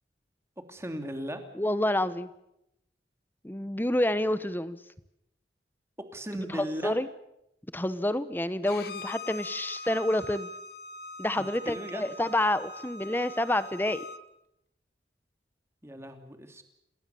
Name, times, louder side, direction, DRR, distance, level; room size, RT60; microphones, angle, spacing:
voice 1, 0.7-1.4 6.0-7.0 11.4-12.1 15.8-16.6, equal, 15° right, 6 dB, 2.9 m, -37 dB
voice 2, 1.5-2.3 3.4-4.8 6.3-7.1 7.7-10.5 11.2-14.0, left 1 dB, 10° left, 14 dB, 1.0 m, -28 dB
Bowed string instrument, 8.6-14.2, left 2 dB, 60° left, 1.7 m, -42 dB
28.0 x 20.0 x 7.0 m, 0.82 s
head